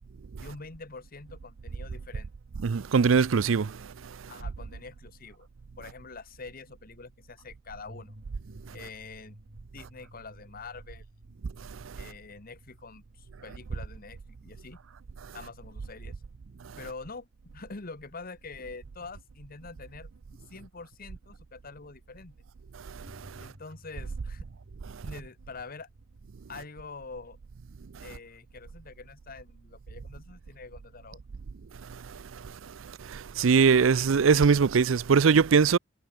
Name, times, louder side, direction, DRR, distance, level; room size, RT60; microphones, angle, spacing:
voice 1, 0.4-2.3 4.3-5.5 5.8-8.1 8.7-9.4 9.7-11.0 11.9-14.8 15.3-16.1 16.8-17.3 17.5-22.4 23.3-24.5 25.0-25.9 26.5-27.4 28.0-31.2, left 4 dB, 50° left, 1.4 m, -45 dB
voice 2, 2.6-3.8 33.1-35.8, right 5 dB, 90° right, 0.5 m, -21 dB
sound 1, 7.8-17.2 18.1-18.2 23.0-26.9, right 1 dB, 50° right, 3.2 m, -55 dB
head